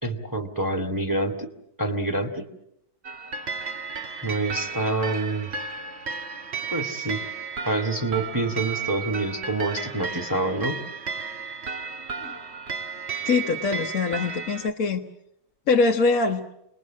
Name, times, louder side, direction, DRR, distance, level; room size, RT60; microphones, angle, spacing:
voice 1, 0.0-1.3 1.8-2.5 4.2-5.5 6.7-7.2 7.6-10.8, right 2 dB, 10° right, 3 dB, 2.0 m, -27 dB
sound 1, 3.0-14.7, right 5 dB, 45° right, 1.5 m, -33 dB
voice 2, 13.2-15.0 15.7-16.4, left 4 dB, 60° left, 0 dB, 1.5 m, -23 dB
28.5 x 21.5 x 7.4 m, 0.79 s
omnidirectional pair, 1.7 m